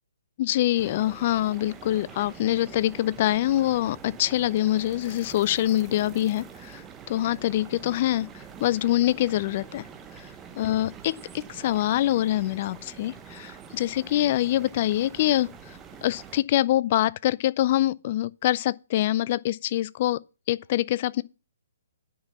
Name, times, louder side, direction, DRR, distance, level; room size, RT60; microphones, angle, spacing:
voice 1, 0.4-9.8 10.2-10.3 10.6-20.2 20.5-21.2, left 14 dB, 40° left, 0.4 m, -25 dB
sound 1, 0.7-16.4, right 7 dB, 15° right, 1.0 m, -45 dB
9.6 x 5.7 x 7.3 m
figure-of-eight pair, 130°, 0 cm